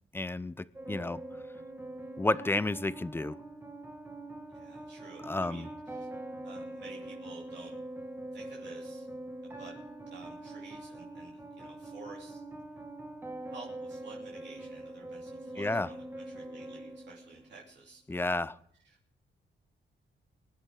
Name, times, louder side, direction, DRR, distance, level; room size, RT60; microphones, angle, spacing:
voice 1, 0.1-1.2 2.2-3.4 5.2-5.7 15.6-15.9 18.1-18.5, left 2 dB, 10° left, 0.4 m, -31 dB
sound 1, 0.7-17.7, right 1 dB, 10° right, 2.0 m, -43 dB
voice 2, 4.5-6.1 6.4-7.7 8.3-9.1 9.4-9.7 10.1-12.4 13.5-18.4 18.8-19.0, right 3 dB, 60° right, 3.0 m, -52 dB
23.0 x 11.0 x 3.8 m
wide cardioid pair, 140°, 20 cm